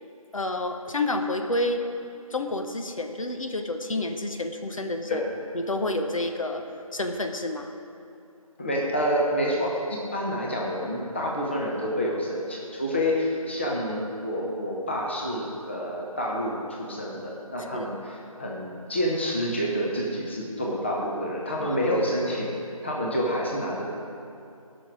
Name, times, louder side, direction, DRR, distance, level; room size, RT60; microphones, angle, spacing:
voice 1, 0.3-1.8 2.3-5.2 5.5-6.6 6.9-7.7 17.7-17.9 21.6-21.9, left 2 dB, 65° left, 5 dB, 0.9 m, -29 dB
voice 2, 8.6-22.5 22.8-23.8, equal, 20° left, -3 dB, 0.8 m, -28 dB
17.0 x 6.1 x 4.9 m, 2.6 s
figure-of-eight pair, 170°, 19 cm